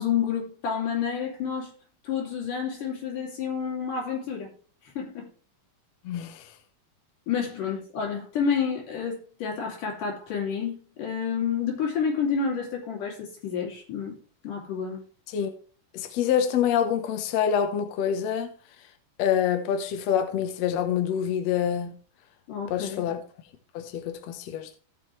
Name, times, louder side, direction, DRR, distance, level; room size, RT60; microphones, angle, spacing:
voice 1, 0.0-1.7 2.0-4.5 5.0-5.3 7.3-14.2 14.4-15.0 22.5-23.1, left 6 dB, 90° left, 4.5 m, -29 dB
voice 2, 6.0-6.5 15.3-15.6 15.9-18.5 19.2-22.0 22.7-23.2 23.7-24.8, left 8 dB, 65° left, 2.0 m, -26 dB
16.5 x 6.2 x 3.2 m
omnidirectional pair, 3.6 m